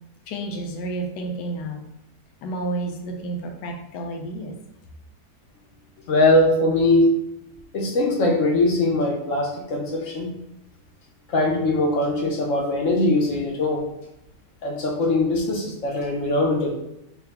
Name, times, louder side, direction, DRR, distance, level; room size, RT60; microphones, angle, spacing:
voice 1, 0.3-1.8 2.4-4.5, right 2 dB, 80° left, 1 dB, 1.3 m, -30 dB
voice 2, 6.1-7.1 7.7-10.3 11.3-13.8 14.6-16.7, left 2 dB, 60° left, 0 dB, 0.9 m, -21 dB
4.7 x 2.4 x 3.4 m, 0.83 s
omnidirectional pair, 1.8 m